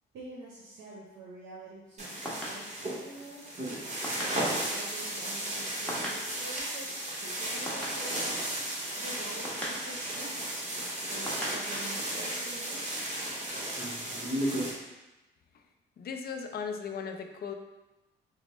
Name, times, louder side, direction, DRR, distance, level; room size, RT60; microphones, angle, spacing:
voice 1, 0.1-3.5 4.1-8.4 9.0-10.6 11.0-13.0, right 2 dB, 75° right, -5 dB, 0.7 m, -47 dB
sound 1, 1.9-12.5, equal, 5° left, 1.0 m, -44 dB
sound 2, 2.0-14.7, right 1 dB, 35° right, 1.0 m, -34 dB
voice 2, 16.0-17.5, left 6 dB, 50° left, 5 dB, 0.4 m, -37 dB
4.2 x 2.0 x 3.0 m, 1.0 s
cardioid pair, 90°, 20 cm